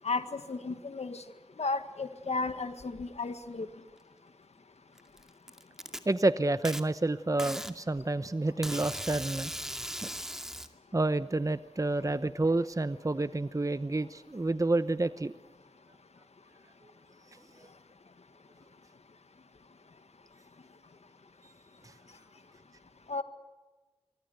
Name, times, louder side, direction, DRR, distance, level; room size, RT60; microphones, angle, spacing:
voice 1, 0.0-1.2 1.6-3.7 23.1-23.2, left 3 dB, 90° left, 10 dB, 1.8 m, -34 dB
Packing tape duct tape, 5.0-6.0 6.6-6.8 7.4-7.7 8.6-10.7, equal, 5° right, 2.3 m, -38 dB
voice 2, 6.1-9.5 10.0-10.1 10.9-15.3 21.8-21.9, right 2 dB, 30° right, 13 dB, 0.9 m, -29 dB
27.0 x 23.5 x 8.0 m, 1.2 s
wide cardioid pair, 55°, 11 cm